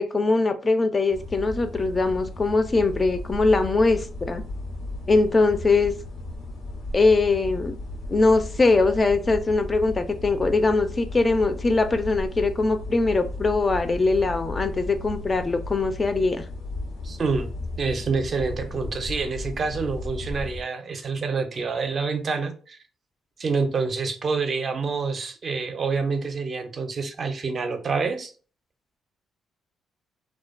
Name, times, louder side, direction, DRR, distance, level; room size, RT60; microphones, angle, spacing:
voice 1, 0.0-4.4 5.1-5.9 6.9-7.8 8.1-16.4, left 3 dB, 30° left, 0.3 m, -22 dB
sound 1, 1.1-20.6, left 2 dB, 90° left, 0.7 m, -35 dB
voice 2, 17.0-17.5 17.8-22.8 23.4-28.3, right 4 dB, 45° right, 0.4 m, -27 dB
2.5 x 2.2 x 2.4 m
cardioid pair, 90°, 0 cm